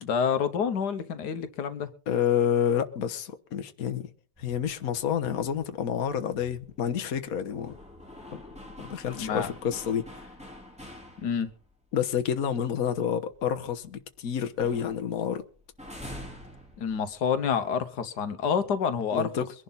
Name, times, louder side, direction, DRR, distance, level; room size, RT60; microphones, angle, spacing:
voice 1, 0.0-1.9 9.2-9.5 11.2-11.5 16.8-19.3, left 7 dB, 85° left, 1.7 m, -28 dB
voice 2, 2.1-4.1 4.4-7.7 8.3-8.4 8.8-10.1 11.9-15.4 19.1-19.5, left 8 dB, 60° left, 1.5 m, -29 dB
sound 1, 4.4-11.7 12.1-12.2 12.6-14.2 14.4-17.5, left 1 dB, 5° right, 3.5 m, -47 dB
23.0 x 11.0 x 4.0 m
omnidirectional pair, 1.7 m